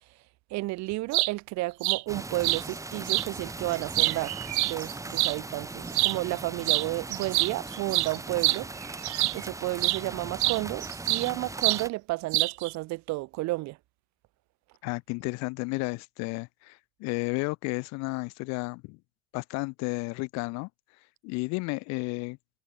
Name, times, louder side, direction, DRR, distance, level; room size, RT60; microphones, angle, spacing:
voice 1, 0.5-4.3 4.6-8.7 9.3-13.8, right 20 dB, 50° right, 1.9 m, -32 dB
sound 1, 0.9-1.3 1.8-2.0 2.4-2.6 3.1-3.3 3.7-5.3 5.9-6.2 6.6-6.9 7.1-9.4 9.8-10.0 10.4-11.3 11.6-11.8 12.3-12.7, right 22 dB, 65° right, 1.3 m, -26 dB
sound 2, 2.1-11.9, right 2 dB, 10° right, 2.1 m, -39 dB
voice 2, 14.8-19.0 19.3-20.7 21.2-22.4, left 27 dB, 50° left, 0.8 m, -32 dB
hypercardioid pair, 90°, 36 cm